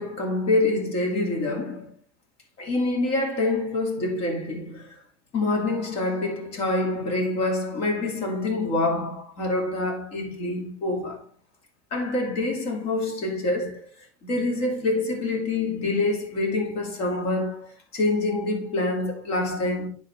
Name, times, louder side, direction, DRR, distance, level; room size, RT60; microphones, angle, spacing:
voice 1, 0.0-1.9 2.6-5.0 5.3-11.2 11.9-19.9, left 2 dB, 50° left, 2.6 m, -26 dB
10.5 x 4.2 x 3.5 m
supercardioid pair, 115°, 13 cm